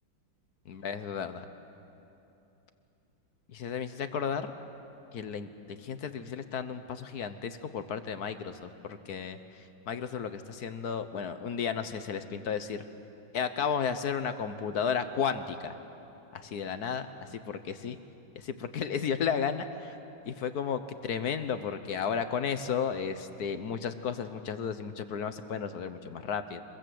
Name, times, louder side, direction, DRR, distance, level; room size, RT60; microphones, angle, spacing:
voice 1, 0.7-1.4 3.5-4.5 5.1-12.8 13.3-15.8 16.3-18.0 18.3-19.9 20.3-26.6, left 7 dB, 60° left, 10 dB, 1.3 m, -33 dB
26.0 x 22.0 x 7.8 m, 2.9 s
omnidirectional pair, 2.2 m